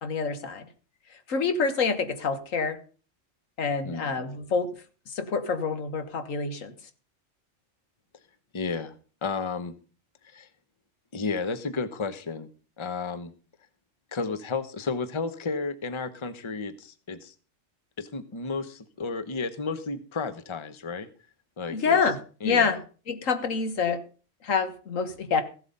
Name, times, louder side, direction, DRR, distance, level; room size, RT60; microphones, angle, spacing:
voice 1, 0.0-0.6 1.3-2.8 3.6-4.7 5.1-6.7 21.7-22.2 22.4-22.8 23.1-24.0 24.4-25.4, left 5 dB, 80° left, 9 dB, 1.7 m, -26 dB
voice 2, 8.5-8.9 9.2-9.8 10.2-10.5 11.1-12.5 12.8-13.3 14.1-17.3 18.0-21.1 21.6-22.0 22.4-22.8, left 4 dB, 25° left, 12 dB, 0.9 m, -32 dB
15.0 x 7.9 x 5.3 m, 0.37 s
omnidirectional pair, 1.4 m